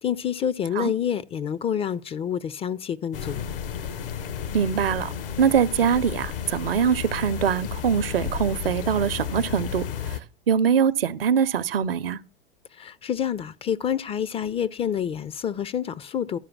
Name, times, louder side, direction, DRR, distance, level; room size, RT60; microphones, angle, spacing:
voice 1, 0.0-3.4 12.7-16.4, left 8 dB, 20° left, 0.4 m, -28 dB
sound 1, 3.1-10.2, left 8 dB, 70° left, 1.0 m, -32 dB
voice 2, 4.5-5.1 5.4-10.2 10.5-12.2, right 7 dB, 75° right, 0.7 m, -23 dB
12.5 x 4.9 x 5.8 m
figure-of-eight pair, 85°, 29 cm